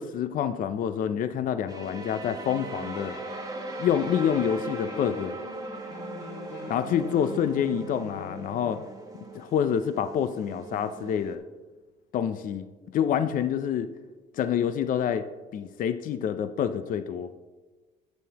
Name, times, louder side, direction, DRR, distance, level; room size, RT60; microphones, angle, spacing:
voice 1, 0.0-3.1 3.8-5.4 6.7-8.8 9.3-11.4 12.1-12.7 12.9-13.9 14.4-15.2 15.5-17.3, left 8 dB, 55° left, 11 dB, 0.5 m, -27 dB
sound 1, 1.7-11.4, right 2 dB, 20° right, 1.2 m, -39 dB
sound 2, 2.9-9.0, left 4 dB, 85° left, 2.0 m, -44 dB
11.0 x 8.5 x 2.9 m, 1.3 s
cardioid pair, 110°, 17 cm